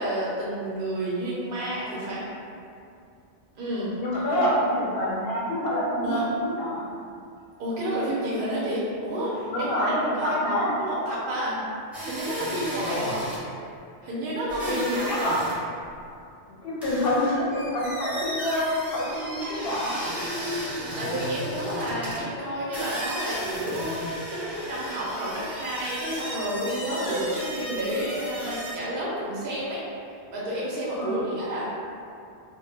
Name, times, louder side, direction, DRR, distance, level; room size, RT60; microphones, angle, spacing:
voice 1, 0.0-2.2 3.6-3.9 6.0-6.2 7.6-9.9 10.2-11.6 12.0-13.1 14.0-15.3 21.0-29.8 30.3-31.7, right 1 dB, 60° right, -6 dB, 0.6 m, -30 dB
voice 2, 4.0-6.8 9.5-10.7 12.9-13.2 14.6-15.5 16.5-20.0 31.0-31.2, left 1 dB, 60° left, -5 dB, 0.7 m, -27 dB
sound 1, 11.9-13.4 14.5-15.6 15.8-15.9 16.8-22.2 22.7-28.8, equal, ahead, 0.4 m, -35 dB
2.1 x 2.1 x 3.1 m, 2.5 s
omnidirectional pair, 1.2 m